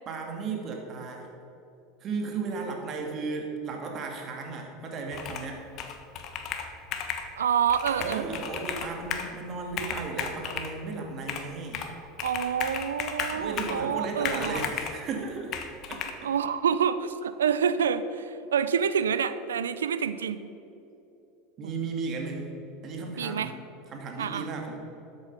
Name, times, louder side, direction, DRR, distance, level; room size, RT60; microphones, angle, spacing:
voice 1, 0.1-1.3 2.0-5.7 8.0-11.8 13.3-15.5 15.9-16.2 21.6-22.6 22.8-23.6 23.9-24.8, right 4 dB, 40° right, 2 dB, 2.4 m, -35 dB
Computer keyboard, 5.1-5.5 5.8-7.3 7.7-9.3 9.7-10.7 11.3-11.9 12.2-13.8 14.2-15.0 15.5-16.1, left 7 dB, 50° left, 1.2 m, -34 dB
voice 2, 7.4-8.3 12.2-14.7 16.2-20.4 21.6-21.8 23.2-23.5 24.2-24.5, right 7 dB, 85° right, 13 dB, 0.5 m, -27 dB
12.5 x 8.0 x 5.5 m, 2.9 s
hypercardioid pair, 80°, 0 cm